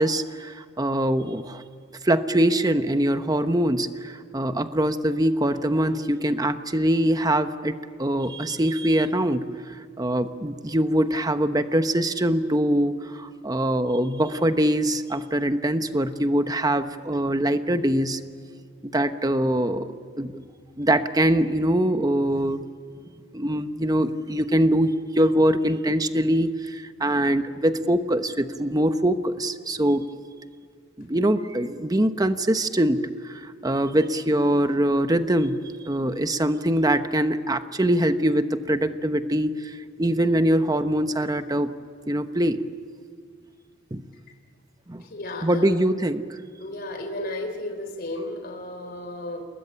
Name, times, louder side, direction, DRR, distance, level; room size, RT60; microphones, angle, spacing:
voice 1, 0.0-1.6 2.0-18.2 18.8-20.4 20.8-22.6 23.3-30.0 31.0-35.6 35.8-41.7 42.1-42.6 43.9-44.0 44.9-45.0 45.4-46.2, right 1 dB, 20° right, 9 dB, 1.1 m, -23 dB
voice 2, 45.0-45.8 46.6-49.4, left 1 dB, 55° left, 3 dB, 3.5 m, -34 dB
29.0 x 20.5 x 8.9 m, 2.1 s
head